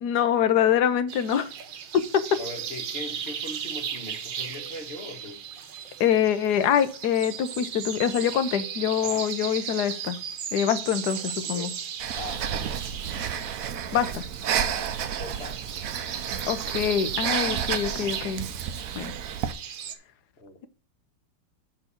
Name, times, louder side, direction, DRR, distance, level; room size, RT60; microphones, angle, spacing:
voice 1, 0.0-1.5 1.9-2.4 6.0-10.2 10.5-11.7 13.9-14.3 16.5-18.4 18.9-19.1, left 9 dB, 70° left, 12 dB, 1.2 m, -24 dB
sound 1, 1.1-19.9, right 8 dB, 80° right, 1.6 m, -36 dB
voice 2, 2.4-5.4 9.0-9.2 11.4-11.7 12.1-12.4 15.2-15.6 20.4-20.6, left 1 dB, 35° left, 3 dB, 1.6 m, -40 dB
Breathing, 12.0-19.5, right 8 dB, 60° right, 0.9 m, -31 dB
6.3 x 5.1 x 6.9 m, 0.38 s
omnidirectional pair, 2.0 m